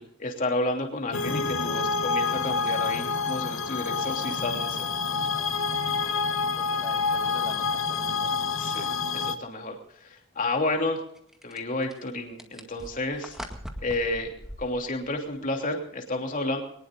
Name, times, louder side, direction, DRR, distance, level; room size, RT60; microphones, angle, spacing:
voice 1, 0.0-4.9 8.6-8.9 9.1-9.8 10.4-11.0 11.4-13.4 13.8-14.3 14.6-16.6, left 2 dB, 40° left, 2 dB, 3.0 m, -30 dB
sound 1, 1.1-9.3, left 5 dB, 70° left, 1.1 m, -28 dB
voice 2, 5.1-8.3, left 1 dB, 15° left, 3 dB, 1.7 m, -47 dB
sound 2, 5.8-5.9 6.6-6.7 7.2-7.3 8.9-9.1 11.1-15.4, equal, 5° right, 2.0 m, -42 dB
24.0 x 19.5 x 2.6 m, 0.73 s
head